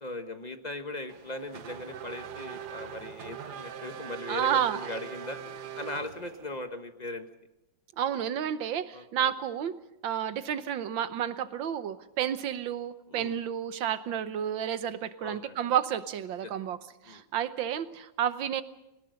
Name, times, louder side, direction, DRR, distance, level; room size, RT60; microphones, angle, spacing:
voice 1, 0.0-5.4 5.7-7.3 8.9-9.3 13.1-13.3 15.2-15.6 16.4-16.5 17.1-17.2, left 2 dB, 25° left, 7 dB, 1.3 m, -39 dB
Race car auto racing / Accelerating revving vroom, 1.1-6.6, right 8 dB, 60° right, 1.5 m, -42 dB
voice 2, 4.3-4.9 8.0-9.7 10.0-16.8 17.0-18.6, right 9 dB, 80° right, 12 dB, 1.7 m, -31 dB
22.0 x 19.0 x 6.5 m, 0.92 s
omnidirectional pair, 2.1 m